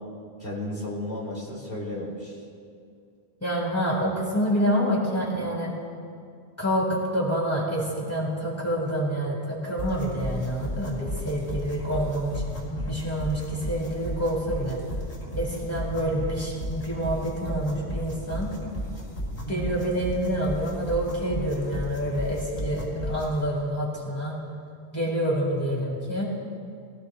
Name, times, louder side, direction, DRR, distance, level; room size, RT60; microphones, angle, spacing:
voice 1, 0.4-2.4, left 1 dB, 65° left, -5 dB, 2.9 m, -33 dB
voice 2, 3.4-5.7 6.6-12.4 12.8-14.8 15.4-18.5 19.5-24.4 24.9-26.2, equal, 15° left, -4 dB, 4.4 m, -27 dB
sound 1, 9.8-23.4, equal, 80° left, 4.4 m, -34 dB
24.5 x 17.5 x 2.3 m, 2.3 s
omnidirectional pair, 1.1 m